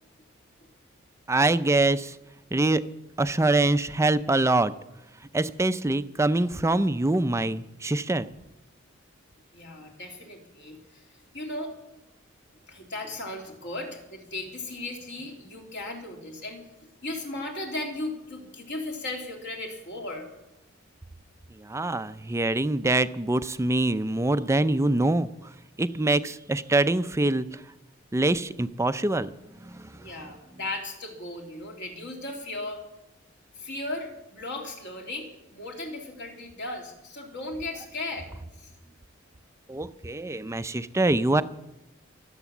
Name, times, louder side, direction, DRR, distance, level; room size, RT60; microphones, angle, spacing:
voice 1, 1.3-2.1 2.5-2.8 3.2-4.7 5.3-8.3 21.6-25.3 25.8-27.5 28.1-29.3 29.6-29.9 39.7-41.4, right 2 dB, 15° right, 13 dB, 0.5 m, -24 dB
voice 2, 9.5-11.0 11.3-11.7 12.7-16.6 17.0-20.3 30.0-32.8 33.5-38.3 38.6-38.7, left 2 dB, 60° left, 1 dB, 3.2 m, -36 dB
23.5 x 8.1 x 7.2 m, 0.91 s
head